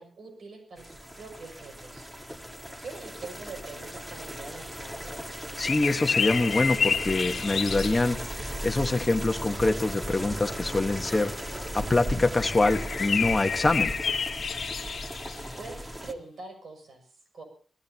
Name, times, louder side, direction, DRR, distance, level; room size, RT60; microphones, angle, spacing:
voice 1, 0.0-2.1 2.8-5.2 15.5-17.4, right 3 dB, 70° right, 5 dB, 6.5 m, -44 dB
sound 1, 0.8-16.1, equal, 10° right, 1.6 m, -37 dB
sound 2, 5.6-8.2 12.4-15.6, left 6 dB, 70° left, 1.5 m, -29 dB
voice 2, 5.6-13.9, left 2 dB, 20° left, 6 dB, 1.3 m, -25 dB
27.0 x 18.0 x 2.9 m, 0.41 s
wide cardioid pair, 145°, 0 cm